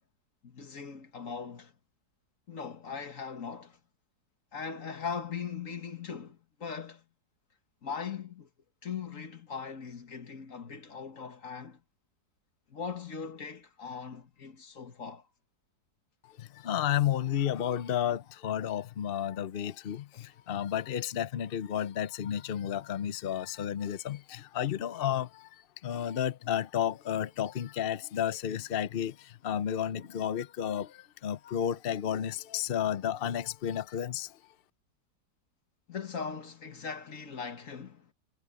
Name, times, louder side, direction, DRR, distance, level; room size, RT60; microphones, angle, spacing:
voice 1, 0.4-1.7 2.5-3.8 4.5-7.0 7.8-8.5 8.8-11.8 12.7-15.2 20.1-20.3 35.9-38.1, left 6 dB, 45° left, 2.0 m, -40 dB
voice 2, 16.4-25.5 25.8-34.3, left 10 dB, 65° left, 0.5 m, -32 dB
omnidirectional pair, 1.9 m